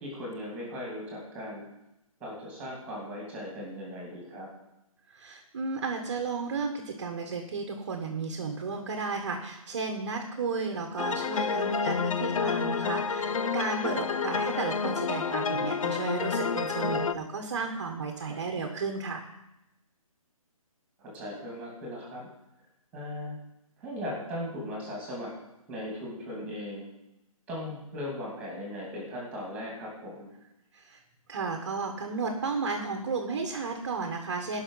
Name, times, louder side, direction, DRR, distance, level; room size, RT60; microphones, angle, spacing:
voice 1, 0.0-1.6 2.2-4.5 18.2-18.6 21.0-22.3 22.9-23.3 23.8-25.3 25.7-26.8 27.5-30.3, left 1 dB, 5° right, -4 dB, 2.7 m, -38 dB
voice 2, 5.1-19.2 30.9-31.0 31.3-34.6, right 4 dB, 35° right, 4 dB, 1.2 m, -33 dB
sound 1, 11.0-17.2, left 5 dB, 65° left, 0.6 m, -29 dB
17.5 x 5.8 x 5.6 m, 0.89 s
hypercardioid pair, 170°, 19 cm